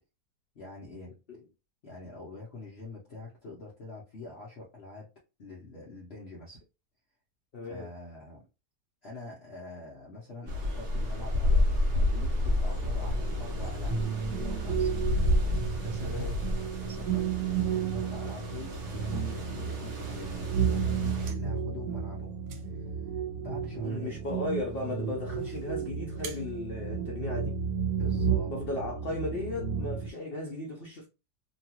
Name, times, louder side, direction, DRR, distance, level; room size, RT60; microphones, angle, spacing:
voice 1, 0.5-1.2 1.8-5.1 5.4-6.6 7.6-8.4 9.0-14.9 15.7-16.3 16.7-20.4 20.6-22.3 22.6-24.2 27.9-28.5, left 2 dB, 50° left, 0.8 m, -45 dB
voice 2, 7.5-7.9 16.0-16.4 23.8-27.6 28.5-31.1, left 2 dB, 90° left, 0.5 m, -36 dB
sound 1, 10.5-21.3, left 1 dB, 45° right, 0.9 m, -30 dB
sound 2, 13.0-30.1, right 7 dB, 60° right, 1.6 m, -32 dB
sound 3, 20.9-27.7, right 6 dB, 80° right, 1.2 m, -52 dB
3.0 x 2.3 x 2.8 m
omnidirectional pair, 1.8 m